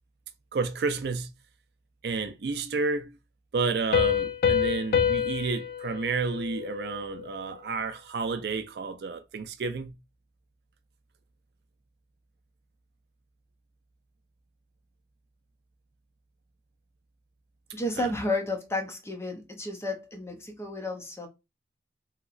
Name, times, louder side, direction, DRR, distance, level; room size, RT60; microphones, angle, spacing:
voice 1, 0.5-1.3 2.0-3.1 3.5-9.9 18.0-18.1, right 4 dB, 65° right, 0.4 m, -31 dB
Piano, 3.9-7.3, left 8 dB, 55° left, 0.4 m, -27 dB
voice 2, 17.7-21.3, left 1 dB, 15° left, 0.6 m, -32 dB
2.9 x 2.8 x 2.5 m
head